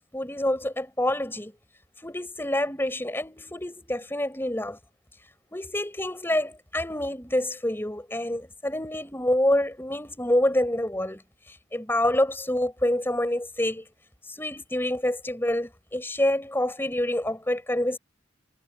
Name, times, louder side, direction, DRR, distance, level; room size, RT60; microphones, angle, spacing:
voice 1, 0.1-1.5 2.0-4.8 5.5-11.2 11.7-13.8 14.3-18.0, left 1 dB, 10° left, 4.4 m, -27 dB
head